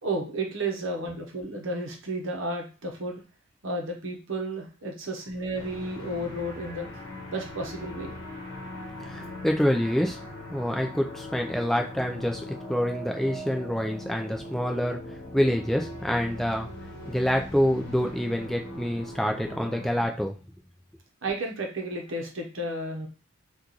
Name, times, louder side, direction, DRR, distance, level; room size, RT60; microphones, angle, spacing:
voice 1, 0.0-3.2 3.6-7.0 7.3-8.1 21.2-23.1, right 1 dB, 65° right, 2 dB, 0.8 m, -32 dB
sound 1, 5.5-20.1, left 1 dB, 55° left, 1.0 m, -40 dB
voice 2, 9.0-10.2 10.5-15.0 15.3-16.7 17.1-20.4, equal, ahead, 2 dB, 0.3 m, -27 dB
2.9 x 2.3 x 3.9 m, 0.33 s
head